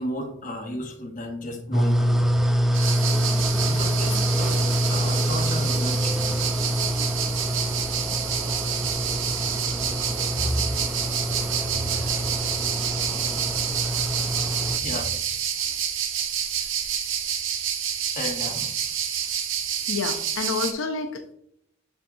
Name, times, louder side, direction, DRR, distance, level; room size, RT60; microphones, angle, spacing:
voice 1, 0.0-2.3 3.6-4.6 4.9-6.4 10.3-10.7 11.6-15.4 18.1-18.7, left 1 dB, 40° left, 2 dB, 1.0 m, -34 dB
sound 1, 1.7-14.8, equal, ahead, 0.3 m, -26 dB
sound 2, 2.7-20.7, right 8 dB, 75° right, 0.7 m, -28 dB
voice 2, 19.9-21.3, left 4 dB, 80° left, 5 dB, 0.6 m, -29 dB
6.9 x 5.2 x 2.6 m, 0.73 s
head